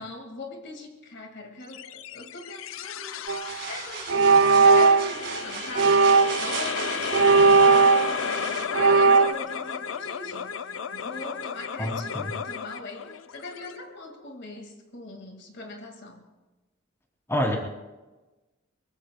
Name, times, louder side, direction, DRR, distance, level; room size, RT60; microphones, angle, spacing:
voice 1, 0.0-3.3 3.6-6.0 6.4-16.3, left 2 dB, 60° left, 3 dB, 2.0 m, -41 dB
sound 1, 1.7-14.3, left 7 dB, 85° left, 0.6 m, -34 dB
sound 2, 3.3-3.5 4.1-5.2 5.8-6.5 7.1-8.4 8.8-9.3, right 4 dB, 75° right, 0.4 m, -18 dB
sound 3, 3.5-8.7, right 7 dB, 60° right, 2.2 m, -37 dB
voice 2, 11.8-12.2 17.3-17.6, equal, 15° left, 0 dB, 2.8 m, -27 dB
24.0 x 23.5 x 2.2 m, 1.1 s
head